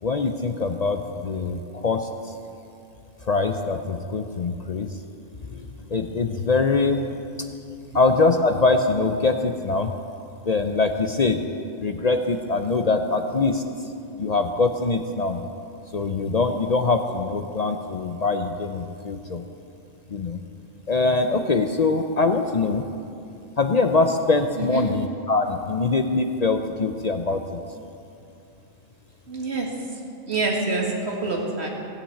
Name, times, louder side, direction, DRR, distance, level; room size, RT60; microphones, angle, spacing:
voice 1, 0.0-2.3 3.2-5.0 5.4-7.1 7.9-9.9 10.5-11.4 11.8-13.9 14.2-15.4 15.9-19.4 20.1-20.4 20.9-22.9 23.6-27.6, left 3 dB, 50° left, 6 dB, 0.5 m, -23 dB
voice 2, 20.5-20.8 24.6-24.9 29.3-30.0 30.3-31.7, right 3 dB, 55° right, -1 dB, 2.1 m, -27 dB
17.0 x 6.0 x 8.4 m, 2.6 s
omnidirectional pair, 1.3 m